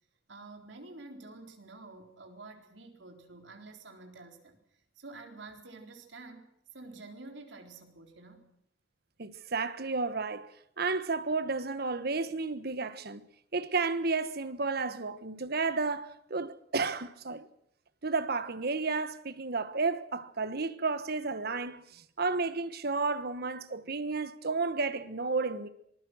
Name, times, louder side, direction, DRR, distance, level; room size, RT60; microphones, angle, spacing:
voice 1, 0.3-4.6 5.0-6.5 6.7-8.5, right 3 dB, 85° right, 4.0 m, -49 dB
voice 2, 9.2-10.5 10.8-13.2 13.5-17.5 18.0-25.7, right 4 dB, 60° right, 1.3 m, -32 dB
26.0 x 20.5 x 6.4 m
head